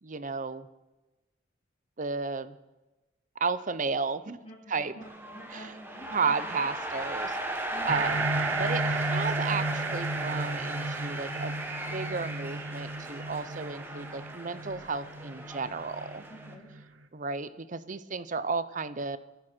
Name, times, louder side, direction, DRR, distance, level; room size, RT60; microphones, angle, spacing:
voice 1, 0.0-0.7 2.0-2.6 3.4-4.4 4.7-5.0 5.5-5.7 6.1-7.4 7.9-11.6 11.9-16.2 17.1-19.2, right 4 dB, 40° right, 15 dB, 0.8 m, -33 dB
voice 2, 4.4-6.7 7.7-8.2 16.3-16.7, equal, 30° left, -5 dB, 3.3 m, -48 dB
sound 1, 5.0-16.5, right 1 dB, 10° right, 1.7 m, -37 dB
sound 2, 7.9-16.8, right 3 dB, 85° right, 1.1 m, -34 dB
23.5 x 11.5 x 4.5 m, 1.1 s
head